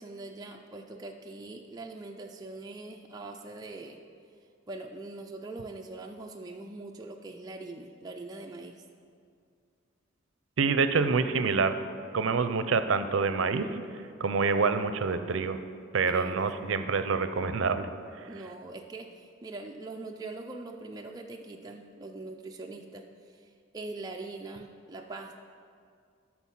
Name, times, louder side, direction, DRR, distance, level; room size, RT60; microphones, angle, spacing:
voice 1, 0.0-4.0 4.7-8.8 16.1-16.4 18.3-23.0 23.7-25.4, right 2 dB, 20° right, 1 dB, 0.4 m, -42 dB
voice 2, 10.6-11.7 12.1-13.7 14.2-15.6 15.9-17.9, right 4 dB, 70° right, 10 dB, 0.5 m, -26 dB
12.5 x 4.4 x 5.7 m, 2.3 s
head